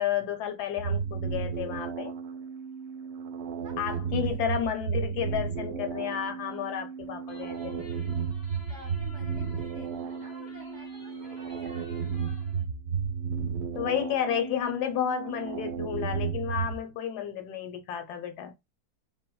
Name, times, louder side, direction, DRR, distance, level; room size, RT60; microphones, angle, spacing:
voice 1, 0.0-2.1 3.8-7.9 13.7-18.5, left 9 dB, 75° left, 1.1 m, -31 dB
sound 1, 0.8-16.8, right 6 dB, 70° right, 1.0 m, -33 dB
voice 2, 3.6-4.4 8.7-12.1, right 2 dB, 50° right, 1.0 m, -50 dB
sound 2, 7.3-12.6, left 5 dB, 50° left, 0.8 m, -50 dB
3.5 x 2.1 x 2.2 m
omnidirectional pair, 1.8 m